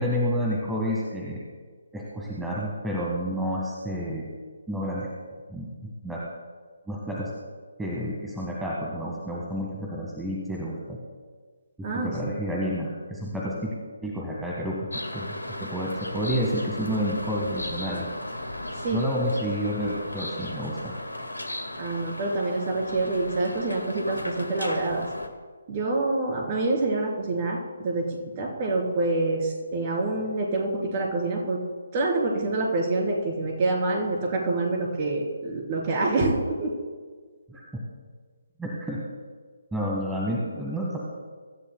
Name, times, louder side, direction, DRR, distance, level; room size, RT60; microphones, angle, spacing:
voice 1, 0.0-1.4 1.9-4.3 4.7-5.1 5.5-6.2 6.9-7.3 7.8-11.0 11.8-13.7 14.0-15.3 15.6-18.1 18.9-20.9 37.5-37.6 38.6-39.0 39.7-41.0, equal, 5° right, -4 dB, 1.6 m, -30 dB
voice 2, 11.8-12.4 18.8-19.0 21.8-25.1 25.7-31.6 31.9-36.7, right 2 dB, 30° right, 0 dB, 3.5 m, -26 dB
sound 1, 14.9-25.3, left 1 dB, 80° left, 1.8 m, -36 dB
24.5 x 13.5 x 2.3 m, 1.5 s
figure-of-eight pair, 140°, 0 cm